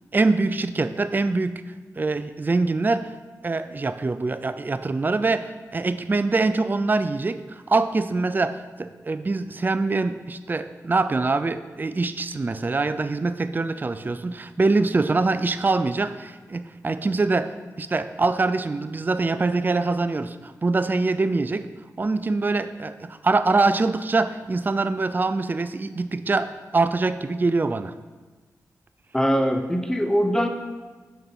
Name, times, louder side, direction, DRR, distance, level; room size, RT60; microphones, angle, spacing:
voice 1, 0.1-1.6 2.0-3.1 3.4-21.7 22.0-27.9, right 3 dB, 30° right, 12 dB, 0.4 m, -24 dB
voice 2, 29.1-30.5, equal, 10° left, 6 dB, 0.8 m, -22 dB
7.0 x 5.3 x 6.1 m, 1.3 s
cardioid pair, 50°, 6 cm